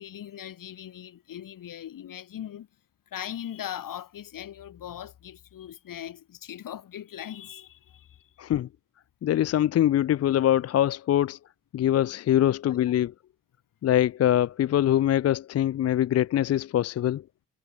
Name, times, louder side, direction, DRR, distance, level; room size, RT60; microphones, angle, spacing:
voice 1, 0.0-2.7 3.1-8.3 12.5-13.0, left 10 dB, 75° left, 3.6 m, -40 dB
voice 2, 8.4-8.7 9.2-11.4 11.7-13.1 13.8-17.2, left 11 dB, 50° left, 0.4 m, -23 dB
wide cardioid pair, 150°, 33 cm